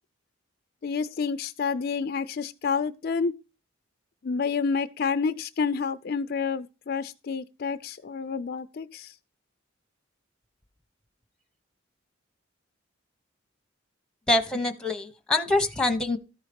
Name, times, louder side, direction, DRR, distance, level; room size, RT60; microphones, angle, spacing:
voice 1, 0.8-3.3 4.2-9.1, left 5 dB, 50° left, 0.4 m, -29 dB
voice 2, 14.3-16.2, left 2 dB, 5° left, 0.9 m, -25 dB
13.5 x 4.8 x 5.1 m
head